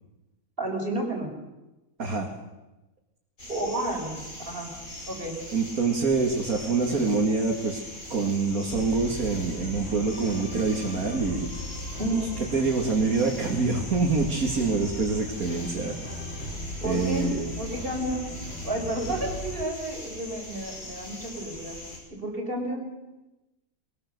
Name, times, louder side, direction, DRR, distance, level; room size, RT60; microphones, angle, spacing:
voice 1, 0.6-1.3 3.5-4.7 5.1-5.4 12.0-12.3 16.8-18.3 18.6-21.8 22.1-22.8, right 1 dB, 40° right, 1 dB, 5.3 m, -31 dB
sound 1, 3.4-22.0, left 1 dB, 70° left, 7.0 m, -41 dB
voice 2, 5.5-7.8 8.1-11.5 12.2-12.3 12.5-16.0 16.8-17.5, right 4 dB, 80° right, 0 dB, 2.7 m, -26 dB
sound 2, 8.7-19.7, left 1 dB, 45° left, 2.9 m, -38 dB
22.0 x 21.5 x 6.8 m, 1.0 s
omnidirectional pair, 1.5 m